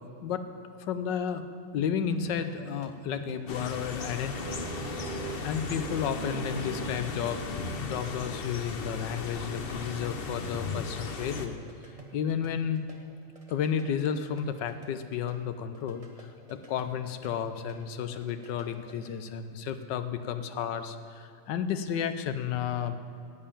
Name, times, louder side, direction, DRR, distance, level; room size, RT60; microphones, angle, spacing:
voice 1, 0.8-1.4 1.7-4.6 5.1-11.6 12.1-12.9 13.5-23.0, left 8 dB, 70° left, 10 dB, 1.3 m, -32 dB
sound 1, 2.1-7.1 9.6-13.0 13.2-17.8 18.0-19.1, right 2 dB, 20° right, 1.2 m, -50 dB
sound 2, 3.5-11.5, left 4 dB, 50° left, 0.6 m, -37 dB
sound 3, 4.4-8.4, right 3 dB, 35° right, 0.9 m, -41 dB
11.0 x 9.1 x 8.7 m, 2.4 s
omnidirectional pair, 2.1 m